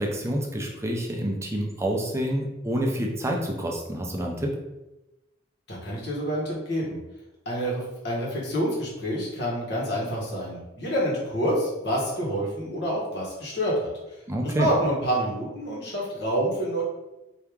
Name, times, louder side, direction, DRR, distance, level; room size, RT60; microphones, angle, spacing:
voice 1, 0.0-4.5 14.3-14.7, equal, 15° right, 0 dB, 0.6 m, -28 dB
voice 2, 5.7-7.0 7.4-16.8, equal, 60° left, -4 dB, 1.6 m, -28 dB
4.7 x 2.9 x 3.6 m, 0.98 s
head